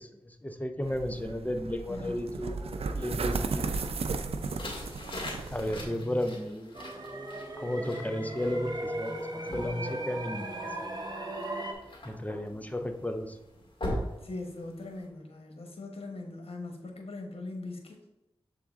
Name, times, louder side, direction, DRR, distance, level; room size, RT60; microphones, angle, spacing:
voice 1, 0.2-3.6 5.5-6.8 7.6-10.9 12.0-13.4, left 1 dB, 15° left, 7 dB, 0.6 m, -34 dB
sound 1, 0.8-5.9, right 4 dB, 80° right, 0.4 m, -35 dB
voice 2, 1.9-2.2 5.7-6.4 14.2-18.0, left 2 dB, 75° left, 2 dB, 1.1 m, -41 dB
sound 2, 4.3-15.0, left 1 dB, 55° left, 2.0 m, -42 dB
sound 3, 6.7-11.7, right 1 dB, 40° right, 1.0 m, -37 dB
7.2 x 3.7 x 3.5 m, 0.93 s
cardioid pair, 50°, 10 cm